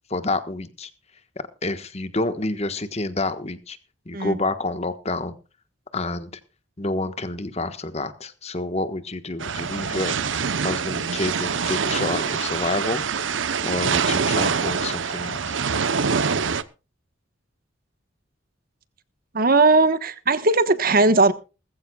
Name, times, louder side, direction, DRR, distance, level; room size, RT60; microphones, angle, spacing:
voice 1, 0.1-0.9 1.6-3.8 4.0-5.4 5.9-6.3 6.8-10.2 10.6-13.0 13.6-15.5, left 2 dB, 35° left, 11 dB, 1.3 m, -28 dB
sound 1, 9.4-16.6, right 6 dB, 70° right, 0.8 m, -25 dB
voice 2, 19.3-21.3, right 3 dB, 50° right, 13 dB, 1.2 m, -18 dB
20.0 x 15.0 x 2.3 m, 0.31 s
head